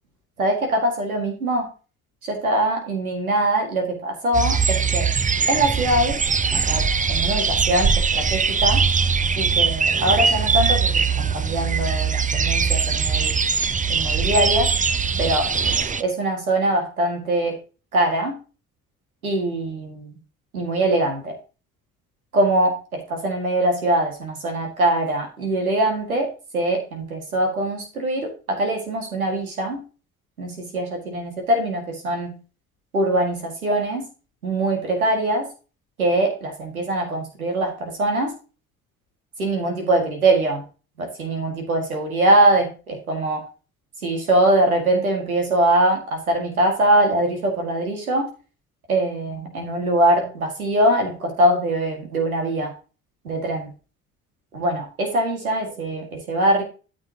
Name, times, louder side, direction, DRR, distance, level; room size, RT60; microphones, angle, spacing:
voice 1, 0.4-1.7 2.2-5.1 5.5-6.2 6.5-8.8 9.4-13.4 13.9-14.7 15.2-15.5 16.0-17.6 17.9-18.4 19.2-20.2 20.5-21.3 22.3-29.8 30.4-32.4 32.9-34.0 34.4-35.5 36.0-38.3 39.4-40.6 41.0-43.4 44.0-48.3 48.9-52.7 53.2-53.7 54.5-56.6, right 1 dB, 90° right, 3 dB, 2.2 m, -22 dB
sound 1, 4.3-16.0, right 5 dB, 20° right, 0.7 m, -21 dB
13.0 x 7.6 x 2.9 m, 0.34 s
figure-of-eight pair, 50°, 41 cm